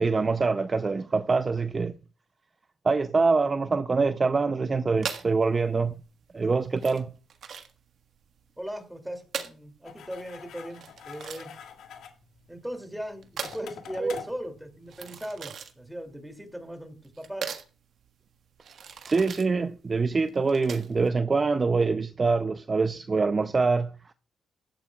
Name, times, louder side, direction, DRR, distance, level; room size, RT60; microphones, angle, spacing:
voice 1, 0.0-1.9 2.8-6.0 6.3-7.1 14.0-14.2 19.0-24.0, right 4 dB, 30° right, 0.5 m, -25 dB
sound 1, 5.0-21.1, right 7 dB, 60° right, 1.4 m, -41 dB
voice 2, 8.6-11.5 12.5-17.5, equal, 5° right, 2.5 m, -38 dB
sound 2, 9.8-15.4, left 7 dB, 75° left, 1.7 m, -46 dB
16.5 x 12.5 x 2.3 m
cardioid pair, 90°, 0 cm